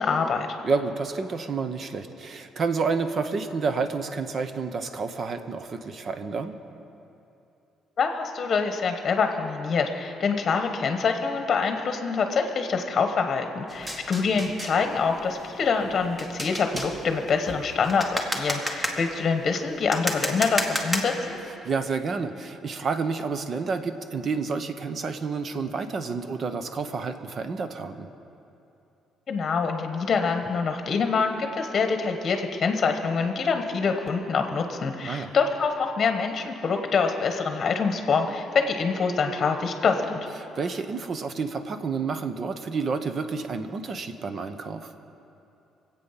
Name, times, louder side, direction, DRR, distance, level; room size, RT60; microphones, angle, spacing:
voice 1, 0.0-0.5 8.0-21.4 29.3-40.3, left 5 dB, 35° left, 5 dB, 1.1 m, -25 dB
voice 2, 0.6-6.6 21.6-28.1 35.0-35.3 40.4-44.9, right 4 dB, 45° right, 9 dB, 0.9 m, -29 dB
sound 1, 13.7-21.5, equal, 15° right, 1.5 m, -33 dB
25.0 x 8.4 x 5.8 m, 2.8 s
cardioid pair, 130°, 0 cm